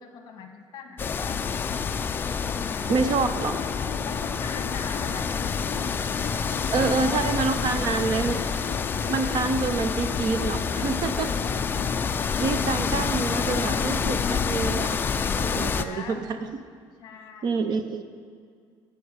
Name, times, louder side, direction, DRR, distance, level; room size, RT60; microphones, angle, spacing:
voice 1, 0.0-1.5 2.4-3.3 4.0-6.0 6.8-8.4 15.6-16.2 17.0-17.6, left 7 dB, 45° left, 5 dB, 1.2 m, -42 dB
sound 1, 1.0-15.8, left 6 dB, 20° left, 0.3 m, -27 dB
voice 2, 2.9-3.6 6.7-8.4 9.1-11.4 12.4-15.0 15.3-16.4 17.4-18.0, right 4 dB, 40° right, 9 dB, 0.6 m, -27 dB
sound 2, 3.1-12.2, left 12 dB, 85° left, 0.4 m, -42 dB
12.5 x 5.2 x 8.2 m, 2.2 s
cardioid pair, 180°, 10 cm